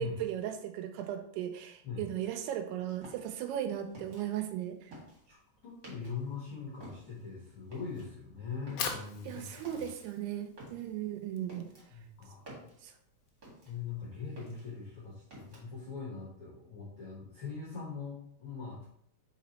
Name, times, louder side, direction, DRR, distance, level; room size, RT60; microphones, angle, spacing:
voice 1, 0.0-4.9 9.2-11.7 12.8-12.9, right 10 dB, 80° right, 8 dB, 2.5 m, -37 dB
sound 1, 3.0-6.4 6.7-14.0 14.2-15.9, right 1 dB, 35° right, 1.7 m, -52 dB
voice 2, 5.6-9.4 9.7-9.8 11.9-12.4 13.6-18.9, left 5 dB, 65° left, -5 dB, 1.3 m, -41 dB
Fire, 8.5-14.7, left 6 dB, 85° left, 1.9 m, -44 dB
5.1 x 4.6 x 4.2 m, 0.69 s
omnidirectional pair, 4.8 m